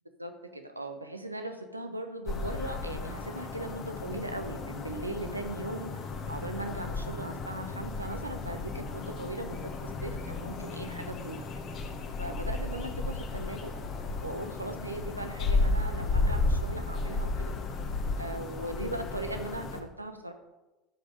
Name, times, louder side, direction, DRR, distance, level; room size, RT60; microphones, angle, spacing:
voice 1, 0.2-6.0 6.3-11.6 12.2-13.7 14.2-17.5 18.2-20.3, right 2 dB, 85° right, 7 dB, 0.8 m, -39 dB
sound 1, 2.3-19.8, left 3 dB, 40° left, 1.3 m, -33 dB
13.0 x 5.3 x 5.1 m, 1.1 s
figure-of-eight pair, 70°, 0 cm